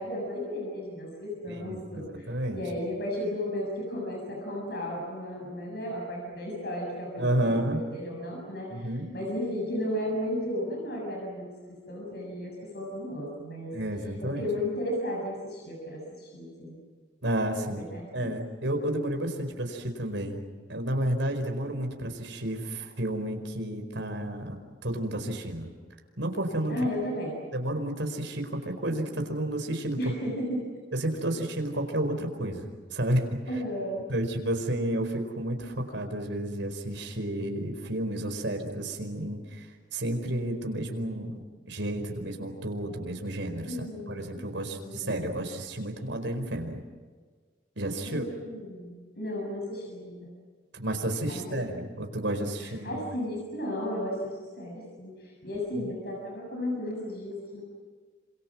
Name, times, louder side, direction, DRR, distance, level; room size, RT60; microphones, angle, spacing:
voice 1, 0.0-13.8 14.2-16.8 17.8-18.4 26.7-27.4 30.0-30.7 33.5-34.1 43.7-45.3 48.0-50.3 51.3-51.6 52.6-57.6, left 1 dB, 60° left, -1 dB, 6.8 m, -34 dB
voice 2, 1.5-2.6 7.2-7.8 8.7-9.1 13.7-14.5 17.2-17.8 18.1-20.4 20.7-24.6 24.8-25.7 26.2-26.8 27.5-30.1 30.9-33.3 34.1-46.8 47.8-48.2 50.7-53.0 55.8-55.9, right 1 dB, 80° right, 5 dB, 4.8 m, -31 dB
28.5 x 27.0 x 6.2 m, 1.5 s
head